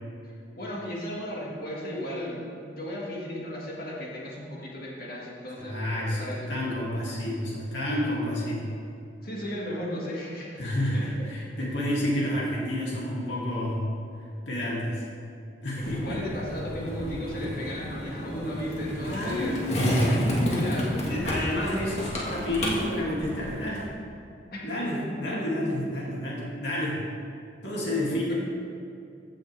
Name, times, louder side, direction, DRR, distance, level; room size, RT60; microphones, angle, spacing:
voice 1, 0.6-5.8 6.1-6.5 9.2-10.6 10.9-11.3 15.8-19.8 20.5-20.9 24.5-24.6 25.6-25.8 28.1-28.3, equal, 55° left, -4 dB, 1.8 m, -35 dB
voice 2, 5.6-8.6 10.6-13.9 14.5-15.0 15.6-16.2 19.0-23.9 24.6-27.0 27.6-28.3, left 1 dB, 80° left, -5 dB, 2.5 m, -30 dB
Skateboard, 15.8-23.8, equal, 40° left, 1.8 m, -30 dB
16.0 x 6.4 x 3.4 m, 2.5 s
head